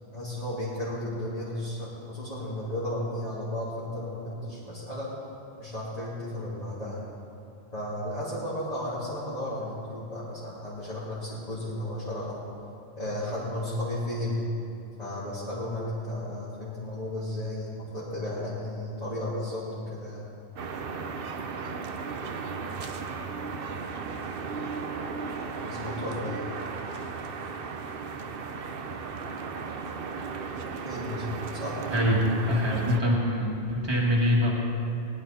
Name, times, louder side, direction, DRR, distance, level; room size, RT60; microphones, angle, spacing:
voice 1, 0.1-5.1 5.6-7.0 7.7-12.4 13.0-14.5 15.0-20.3 25.6-26.4 30.8-31.8, left 1 dB, 35° left, -10 dB, 2.7 m, -34 dB
sound 1, 20.6-33.0, right 5 dB, 55° right, 0.9 m, -35 dB
voice 2, 32.5-34.5, left 1 dB, 20° right, -3 dB, 2.1 m, -24 dB
19.5 x 11.0 x 4.2 m, 2.9 s
omnidirectional pair, 1.2 m